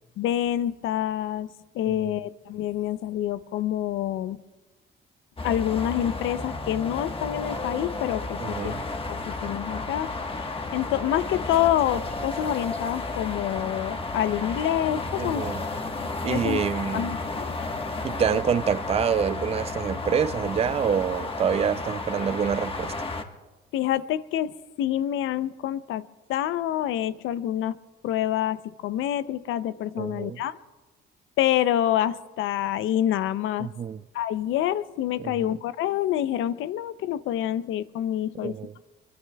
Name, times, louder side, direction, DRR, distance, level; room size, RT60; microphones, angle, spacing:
voice 1, 0.2-1.5 1.7-4.4 5.4-8.7 9.1-10.1 10.7-15.5 15.9-17.5 23.7-27.8 28.0-30.5 31.4-33.7 34.1-38.5, left 11 dB, 85° left, 0.6 m, -27 dB
voice 2, 1.9-2.2 8.4-8.8 15.2-15.6 16.2-17.1 18.0-22.9 30.0-30.4 33.6-34.0 35.2-35.5 38.4-38.7, right 7 dB, 30° right, 0.4 m, -27 dB
sound 1, 5.4-23.2, left 3 dB, 25° left, 1.3 m, -32 dB
23.5 x 23.0 x 2.3 m
cardioid pair, 90°, 20 cm